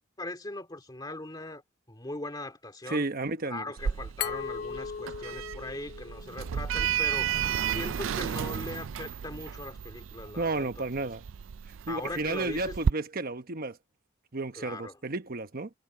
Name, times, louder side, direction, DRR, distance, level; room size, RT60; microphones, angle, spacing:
voice 1, 0.0-1.6 1.9-3.1 3.5-7.3 7.6-10.7 11.9-12.8 14.6-15.0, left 2 dB, 20° left, 2.4 m, -40 dB
voice 2, 2.9-3.6 10.4-11.2 11.9-13.8 14.3-15.7, right 3 dB, 50° right, 1.2 m, -32 dB
Sliding door, 3.8-12.9, right 8 dB, 75° right, 0.4 m, -33 dB
Glass, 4.2-7.0, left 7 dB, 50° left, 0.5 m, -38 dB
head